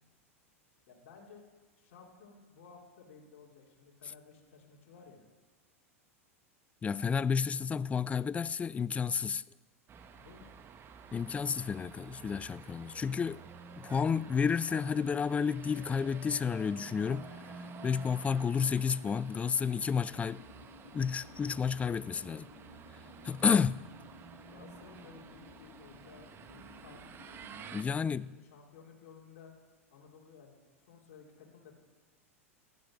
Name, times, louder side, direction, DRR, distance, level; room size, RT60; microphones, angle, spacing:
voice 1, 0.9-1.4 1.8-5.3 10.1-10.5 24.5-29.5 29.9-31.7, left 5 dB, 60° left, 3.4 m, -56 dB
voice 2, 6.8-9.4 11.1-13.4 13.8-17.5 17.8-20.4 20.9-22.5 23.2-23.8 27.7-28.3, left 6 dB, 15° left, 0.4 m, -31 dB
sound 1, 9.9-27.8, right 6 dB, 30° right, 1.3 m, -51 dB
sound 2, 14.2-27.9, left 8 dB, 80° left, 0.6 m, -57 dB
15.0 x 12.0 x 6.3 m
hypercardioid pair, 95°, 8 cm